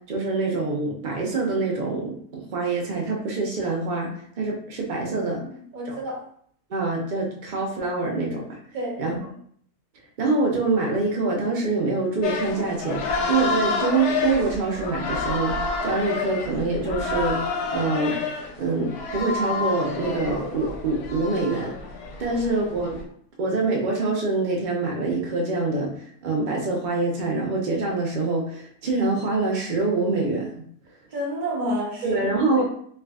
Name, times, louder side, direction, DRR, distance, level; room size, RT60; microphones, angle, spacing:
voice 1, 0.0-5.5 5.9-6.0 6.7-8.6 9.0-9.2 10.2-18.2 18.6-21.8 22.2-23.0 23.4-30.6 32.0-32.6, right 3 dB, 80° right, -1 dB, 0.4 m, -25 dB
voice 2, 5.4-6.2 8.7-9.3 22.3-22.4 31.1-32.6, equal, 40° right, -3 dB, 0.9 m, -31 dB
sound 1, 12.2-23.0, left 4 dB, 85° left, 1.1 m, -29 dB
3.3 x 3.2 x 2.3 m, 0.62 s
omnidirectional pair, 1.6 m